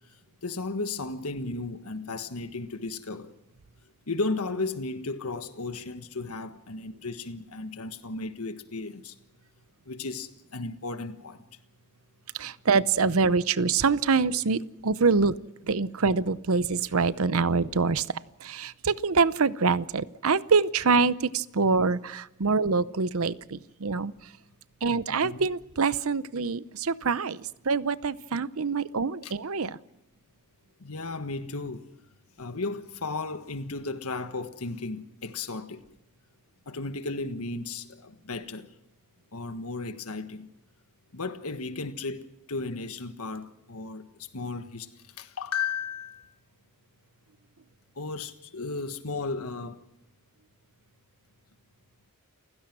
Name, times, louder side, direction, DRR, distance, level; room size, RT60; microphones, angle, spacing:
voice 1, 0.4-3.3 4.1-9.1 9.9-11.4 25.1-25.5 29.2-29.3 30.8-31.9 32.4-35.8 36.7-38.7 39.3-40.5 41.1-44.9 45.2-46.3 48.0-49.8, left 3 dB, 85° left, 1.5 m, -34 dB
voice 2, 12.3-15.3 15.6-18.1 18.4-24.3 24.8-29.8, right 4 dB, 70° right, 0.8 m, -25 dB
29.0 x 16.0 x 6.1 m
head